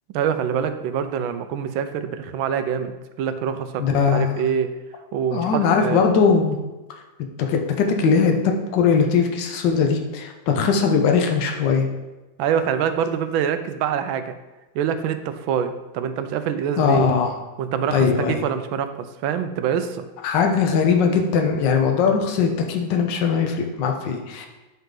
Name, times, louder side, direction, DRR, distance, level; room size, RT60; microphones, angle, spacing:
voice 1, 0.1-4.7 5.1-6.0 12.4-14.3 14.7-17.1 17.6-20.1, right 8 dB, 85° right, 9 dB, 1.4 m, -25 dB
voice 2, 3.8-4.3 5.3-6.6 7.5-8.4 8.7-11.9 16.8-17.3 17.9-18.4 20.2-24.5, left 6 dB, 70° left, 3 dB, 1.5 m, -20 dB
8.8 x 5.5 x 3.8 m, 1.1 s
omnidirectional pair, 2.1 m